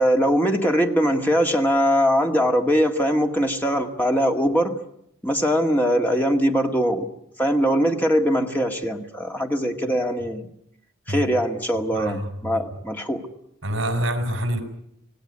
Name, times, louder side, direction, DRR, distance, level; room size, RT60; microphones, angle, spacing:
voice 1, 0.0-4.7 5.2-7.1 7.4-10.5 11.1-13.2, equal, 10° left, 3 dB, 1.9 m, -21 dB
voice 2, 11.9-12.6 13.6-14.6, right 1 dB, 70° right, 8 dB, 4.9 m, -26 dB
26.5 x 17.5 x 9.7 m, 0.77 s
head